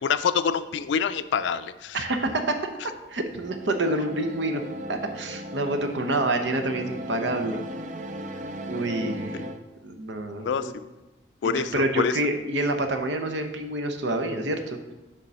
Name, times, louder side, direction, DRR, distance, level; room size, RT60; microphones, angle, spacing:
voice 1, 0.0-2.0 9.3-9.4 10.4-10.7 11.4-12.1, left 6 dB, 90° left, 13 dB, 0.3 m, -26 dB
voice 2, 1.9-2.6 3.1-4.6 4.9-7.6 8.7-9.5 9.8-10.7 11.4-14.8, right 1 dB, 90° right, 6 dB, 0.8 m, -27 dB
sound 1, 3.3-9.6, right 1 dB, 40° right, 0.4 m, -37 dB
6.8 x 3.8 x 6.1 m, 1.1 s
head